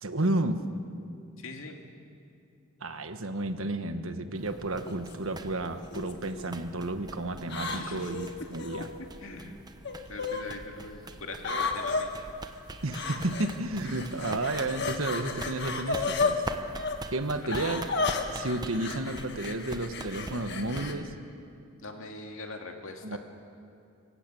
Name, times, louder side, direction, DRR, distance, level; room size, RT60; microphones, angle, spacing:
voice 1, 0.0-0.6 2.8-8.9 12.8-16.5 17.1-17.8 18.3-21.1 23.0-23.2, right 2 dB, 70° right, 8 dB, 1.3 m, -32 dB
voice 2, 1.4-1.8 7.7-8.1 8.4-8.5 8.8-9.6 10.1-12.1 17.4-17.8 21.8-23.2, left 2 dB, 65° left, 3 dB, 2.3 m, -41 dB
sound 1, 4.3-21.0, right 2 dB, 20° right, 0.9 m, -44 dB
sound 2, 4.9-5.1 5.9-6.4 7.5-8.8 9.8-10.4 11.4-12.0 12.9-13.6 13.8-16.3 16.7-17.0 17.5-20.9, left 4 dB, 50° left, 1.6 m, -33 dB
25.5 x 15.5 x 8.5 m, 2.5 s
head